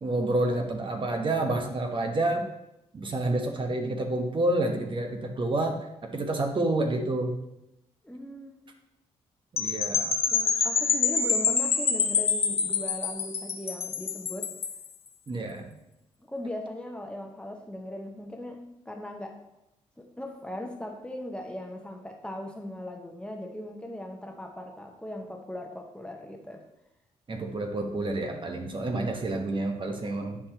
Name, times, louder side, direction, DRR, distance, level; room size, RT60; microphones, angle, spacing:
voice 1, 0.0-2.5 2.9-5.8 6.0-7.3 9.5-10.2 15.3-15.7 27.3-30.4, right 2 dB, 40° right, 3 dB, 1.1 m, -29 dB
voice 2, 8.0-8.7 10.3-14.5 16.3-19.4 20.0-26.6, left 1 dB, 10° left, 2 dB, 1.1 m, -39 dB
sound 1, 9.6-14.9, left 6 dB, 50° left, 0.8 m, -26 dB
11.0 x 4.5 x 3.0 m, 0.88 s
cardioid pair, 70°, 13 cm